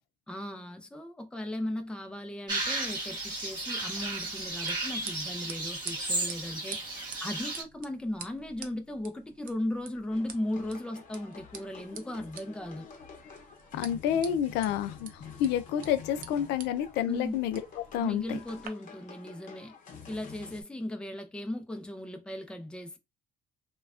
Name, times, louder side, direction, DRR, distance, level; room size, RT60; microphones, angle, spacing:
voice 1, 0.3-12.9 17.0-17.4 18.0-19.7 20.1-23.0, left 1 dB, 5° left, 0.5 m, -37 dB
sound 1, 2.5-7.6, right 2 dB, 25° right, 1.5 m, -34 dB
sound 2, 3.9-18.7, right 7 dB, 60° right, 0.6 m, -49 dB
sound 3, 10.1-20.6, left 6 dB, 50° left, 0.8 m, -49 dB
voice 2, 13.7-15.1 15.4-17.6 17.9-18.4, left 10 dB, 90° left, 0.4 m, -29 dB
3.1 x 2.2 x 2.4 m
cardioid pair, 110°, 17 cm